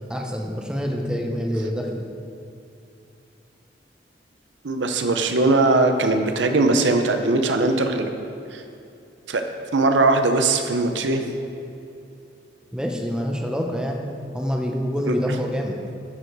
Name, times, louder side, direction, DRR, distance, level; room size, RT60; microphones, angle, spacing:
voice 1, 0.1-2.1 12.7-14.0 14.3-15.8, equal, 5° right, 1 dB, 0.7 m, -26 dB
voice 2, 4.6-8.6 9.3-9.4 9.7-11.2 15.1-15.2, right 2 dB, 90° right, 6 dB, 0.7 m, -20 dB
13.0 x 5.0 x 4.7 m, 2.6 s
head